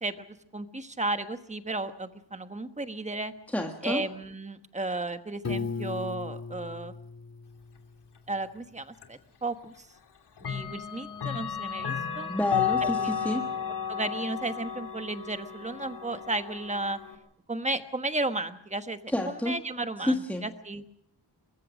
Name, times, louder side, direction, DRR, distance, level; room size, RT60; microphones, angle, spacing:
voice 1, 0.0-3.3 3.8-6.9 8.3-9.9 10.4-12.3 12.8-13.1 13.9-17.0 17.5-19.0 19.3-20.9, right 2 dB, 15° right, 9 dB, 1.2 m, -34 dB
voice 2, 3.5-4.0 12.3-13.5 19.1-19.5 20.1-20.4, left 1 dB, 5° left, 3 dB, 1.5 m, -29 dB
Piano, 5.4-8.4, left 4 dB, 40° left, 1.8 m, -37 dB
Clock, 9.0-9.1 10.4-17.2, left 7 dB, 85° left, 2.9 m, -33 dB
23.5 x 21.0 x 6.2 m, 0.72 s
wide cardioid pair, 160°, 40 cm